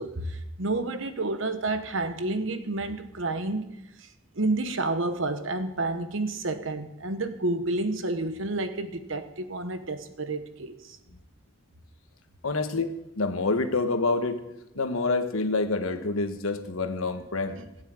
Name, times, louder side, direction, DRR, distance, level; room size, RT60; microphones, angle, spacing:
voice 1, 0.0-11.0 17.5-17.7, right 2 dB, 70° right, 1.2 m, -30 dB
voice 2, 12.4-12.9 13.2-14.4 14.7-17.6, left 3 dB, 90° left, 1.4 m, -27 dB
15.5 x 7.3 x 8.8 m
head